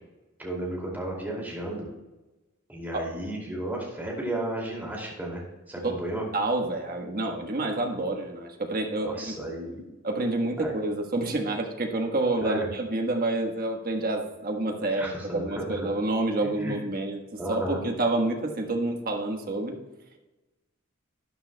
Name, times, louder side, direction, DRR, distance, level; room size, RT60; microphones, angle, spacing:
voice 1, 0.4-1.9 2.7-6.3 9.0-9.9 10.6-10.7 12.4-12.7 14.9-15.9 16.4-16.8 17.4-17.8, right 1 dB, 10° right, -3 dB, 2.5 m, -33 dB
voice 2, 6.3-9.4 10.0-19.8, right 2 dB, 45° right, 3 dB, 1.3 m, -28 dB
12.5 x 9.5 x 2.2 m, 1.1 s
head